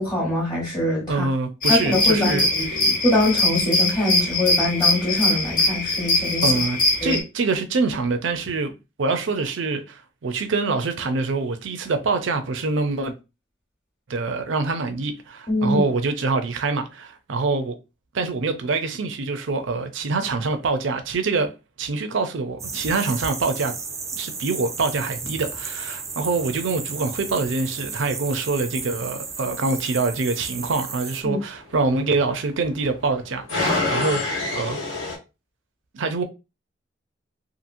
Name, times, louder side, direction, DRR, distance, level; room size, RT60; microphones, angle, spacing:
voice 1, 0.0-1.2 1.7-6.5 7.0-7.2 15.5-15.8 31.2-31.4, left 1 dB, 20° left, 1.0 m, -23 dB
voice 2, 1.1-2.5 6.4-8.7 9.0-13.1 14.1-17.8 18.1-21.5 21.8-23.7 24.1-34.8 35.9-36.2, right 3 dB, 70° right, 0.5 m, -25 dB
sound 1, 1.6-7.2, left 2 dB, 45° left, 0.8 m, -22 dB
sound 2, 22.6-35.2, left 2 dB, 90° left, 1.2 m, -33 dB
sound 3, 22.6-31.2, right 5 dB, 15° right, 0.3 m, -34 dB
2.8 x 2.6 x 2.6 m
head